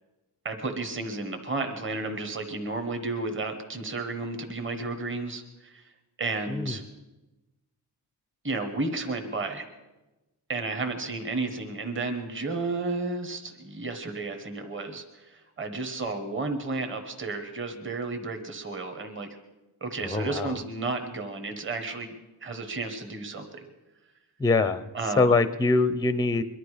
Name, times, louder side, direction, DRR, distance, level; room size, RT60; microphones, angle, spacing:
voice 1, 0.4-5.8 6.2-6.8 8.4-9.7 10.5-19.3 19.8-22.1 22.4-23.7 24.9-25.4, right 3 dB, 30° right, 5 dB, 1.3 m, -32 dB
voice 2, 6.5-6.8 20.0-20.6 24.4-24.9 25.2-26.4, left 3 dB, 10° left, 13 dB, 0.5 m, -23 dB
22.5 x 12.0 x 5.0 m, 1.1 s
wide cardioid pair, 175°, 40 cm